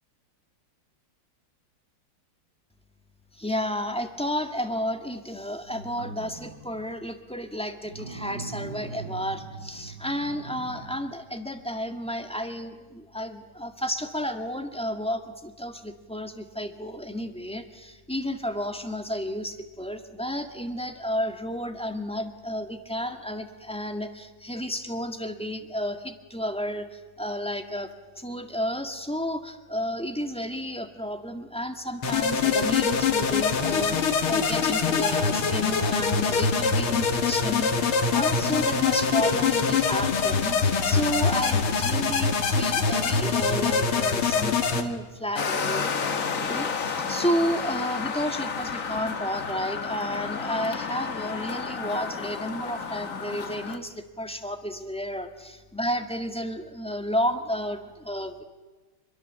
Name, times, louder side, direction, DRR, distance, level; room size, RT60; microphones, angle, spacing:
voice 1, 3.3-58.4, equal, 5° left, 6 dB, 1.5 m, -32 dB
sound 1, 5.7-6.9 7.8-11.0 11.6-11.7, right 3 dB, 45° right, 2.8 m, -41 dB
sound 2, 32.0-44.8, left 5 dB, 75° left, 2.7 m, -24 dB
sound 3, 45.4-53.8, left 5 dB, 40° left, 1.6 m, -31 dB
27.0 x 22.5 x 7.5 m, 1.3 s
omnidirectional pair, 2.4 m